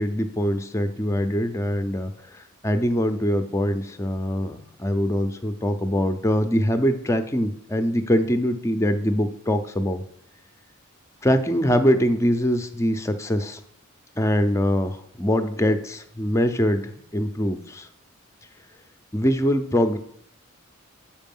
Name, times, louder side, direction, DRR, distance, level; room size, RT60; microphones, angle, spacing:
voice 1, 0.0-2.1 2.6-10.0 11.2-13.6 14.2-17.9 19.1-20.0, equal, 15° left, 8 dB, 0.5 m, -23 dB
8.3 x 4.8 x 5.4 m, 0.66 s
head